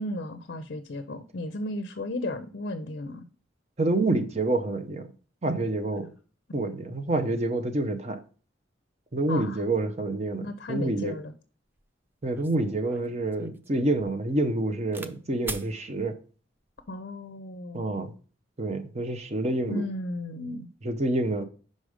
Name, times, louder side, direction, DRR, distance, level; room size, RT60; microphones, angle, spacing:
voice 1, 0.0-3.3 9.3-9.6 10.4-11.3 16.9-18.1 19.7-20.7, left 1 dB, 55° left, 0.5 m, -34 dB
voice 2, 3.8-5.1 5.4-6.1 6.5-8.2 9.1-11.2 12.2-16.2 17.7-18.1 18.6-19.9 20.8-21.4, right 2 dB, 35° right, 0.7 m, -27 dB
sound 1, 11.8-11.9 12.3-15.1 15.4-15.7 16.6-16.9, right 2 dB, 10° right, 0.4 m, -42 dB
5.4 x 5.0 x 4.9 m
head